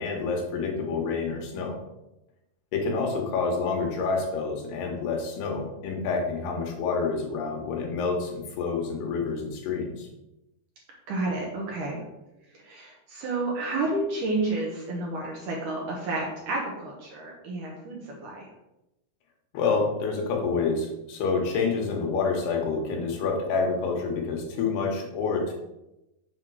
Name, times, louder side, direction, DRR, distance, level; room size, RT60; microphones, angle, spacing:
voice 1, 0.0-1.8 2.7-10.1 19.5-25.5, left 4 dB, 80° left, 1 dB, 3.3 m, -28 dB
voice 2, 11.1-12.0 12.6-18.5, right 2 dB, 65° right, -2 dB, 2.3 m, -30 dB
7.4 x 3.6 x 6.2 m, 0.93 s
omnidirectional pair, 4.7 m